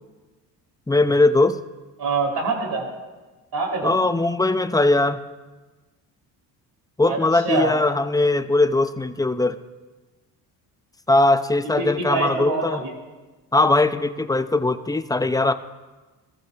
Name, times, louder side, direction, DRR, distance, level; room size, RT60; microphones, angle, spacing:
voice 1, 0.9-1.6 3.8-5.2 7.0-9.6 11.1-12.8 13.5-15.5, left 2 dB, 10° left, 11 dB, 0.7 m, -20 dB
voice 2, 2.0-2.8 3.5-3.9 7.1-7.2 7.4-7.7 11.8-12.9, right 3 dB, 55° right, -1 dB, 5.1 m, -24 dB
22.5 x 14.0 x 2.9 m, 1.2 s
supercardioid pair, 70°, 46 cm